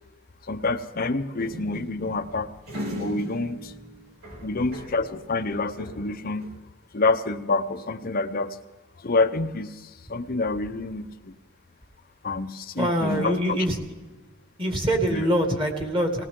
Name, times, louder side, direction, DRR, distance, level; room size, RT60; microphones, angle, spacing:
voice 1, 0.5-2.5 3.0-3.7 4.4-6.5 6.9-8.6 9.0-9.7 10.1-11.3 12.2-13.6 15.1-15.2, left 3 dB, 40° left, 7 dB, 0.7 m, -27 dB
sound 1, 1.4-5.1 5.4-6.6, equal, 75° right, 4.3 m, -38 dB
voice 2, 12.8-13.8 14.6-16.2, equal, 25° right, 4 dB, 2.2 m, -24 dB
19.0 x 19.0 x 3.8 m, 1.3 s
head